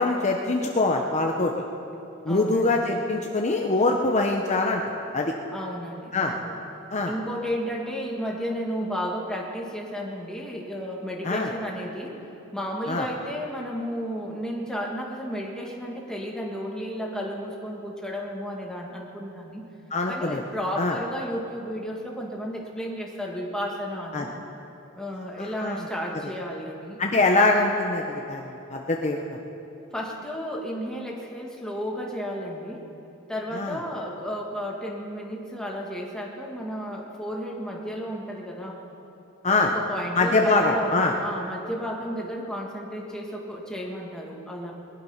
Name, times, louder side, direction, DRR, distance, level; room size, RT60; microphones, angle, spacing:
voice 1, 0.0-1.5 2.2-4.8 5.1-5.3 6.1-6.3 6.9-7.1 11.2-11.5 12.9-13.1 19.9-20.4 20.8-21.0 24.1-24.3 25.4-25.8 27.0-29.2 33.5-33.8 39.4-39.7 40.2-41.1, left 2 dB, 35° left, 2 dB, 0.8 m, -23 dB
voice 2, 2.3-2.8 5.5-6.6 7.0-12.2 12.5-19.6 20.1-24.3 25.0-27.0 29.9-32.9 33.3-38.8 39.5-44.7, equal, 5° left, -1 dB, 1.8 m, -33 dB
21.0 x 11.0 x 5.7 m, 2.9 s
head